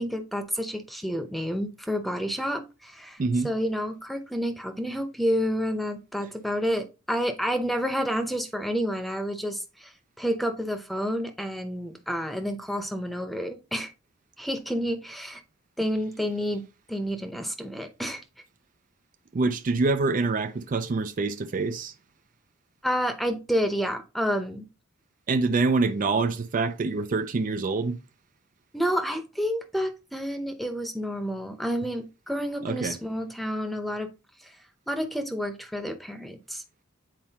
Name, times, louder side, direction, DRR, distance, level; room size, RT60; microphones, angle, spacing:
voice 1, 0.0-3.2 3.4-9.9 10.2-13.9 14.4-15.4 15.8-16.6 16.9-18.2 22.8-24.7 28.7-34.1 34.9-36.6, equal, ahead, 0.8 m, -29 dB
voice 2, 3.2-3.5 19.3-21.9 25.3-28.0 32.6-33.0, right 3 dB, 40° right, 0.4 m, -25 dB
9.0 x 4.3 x 2.8 m
head